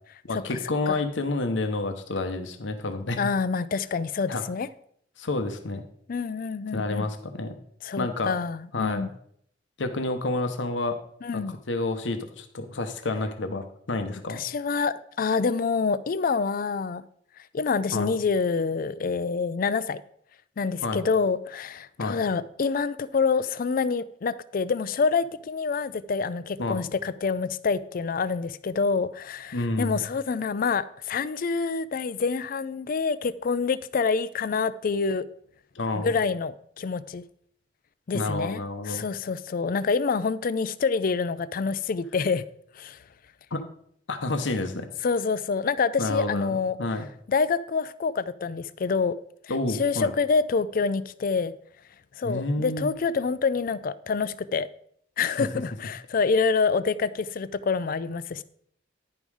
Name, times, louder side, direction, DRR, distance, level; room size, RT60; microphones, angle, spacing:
voice 1, 0.2-3.3 4.3-4.4 5.2-5.8 6.7-7.5 8.0-8.3 8.7-9.1 9.8-11.0 11.3-14.4 17.9-18.1 20.8-21.0 22.0-22.2 26.6-26.9 29.5-30.0 35.7-36.1 38.1-39.0 43.5-43.6 44.1-44.9 46.0-46.5 46.8-47.1 49.5-50.1 52.2-52.9, left 2 dB, 85° left, 0.9 m, -29 dB
voice 2, 3.2-4.7 6.1-7.1 7.8-9.1 11.2-11.5 14.3-17.0 17.5-20.0 20.6-35.2 36.0-37.2 38.1-42.4 42.8-43.0 45.0-46.8 47.3-49.2 49.7-51.5 52.2-54.7 55.2-58.4, left 5 dB, 50° left, 0.4 m, -27 dB
10.5 x 5.4 x 4.8 m
head